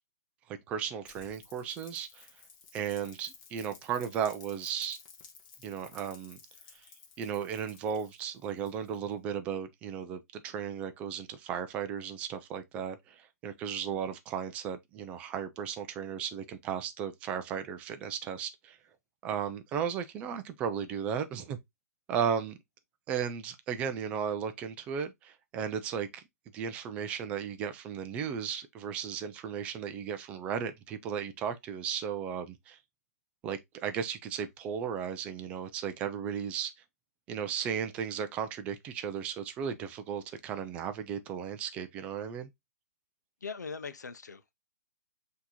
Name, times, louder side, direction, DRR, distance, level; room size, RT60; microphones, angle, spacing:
voice 1, 0.5-2.3 2.7-5.0 5.6-6.4 7.2-18.8 19.2-21.6 22.1-22.6 23.1-26.2 26.5-32.8 33.4-36.7 37.3-42.5, right 7 dB, 15° right, 0.3 m, -35 dB
Rain, 1.0-9.1, left 6 dB, 30° left, 0.9 m, -55 dB
voice 2, 43.4-44.5, left 5 dB, 90° left, 0.6 m, -41 dB
5.8 x 2.8 x 2.9 m
hypercardioid pair, 150°, 9 cm